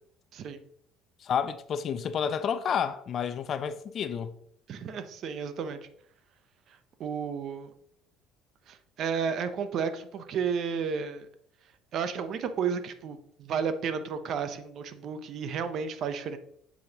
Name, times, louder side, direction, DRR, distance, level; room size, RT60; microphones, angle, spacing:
voice 1, 1.2-4.3, left 7 dB, 40° left, 0.5 m, -30 dB
voice 2, 4.7-5.8 7.0-7.7 8.7-11.3 11.9-16.4, right 6 dB, 50° right, 0.7 m, -32 dB
8.3 x 6.3 x 2.9 m
cardioid pair, 140°, 0 cm